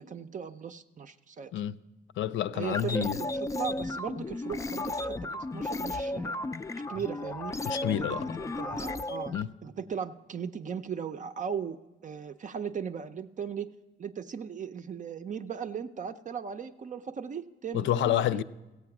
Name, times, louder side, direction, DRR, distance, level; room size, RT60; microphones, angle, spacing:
voice 1, 0.0-1.5 2.5-6.4 6.9-7.5 8.0-9.3 9.6-11.8 12.0-13.7 14.0-18.4, right 7 dB, 40° right, 0.5 m, -37 dB
voice 2, 2.2-3.2 7.7-8.4 9.3-9.5 17.7-18.4, left 12 dB, 75° left, 0.4 m, -29 dB
sound 1, 2.6-9.4, left 2 dB, 15° left, 0.4 m, -34 dB
15.0 x 8.4 x 5.9 m
cardioid pair, 90°, 20 cm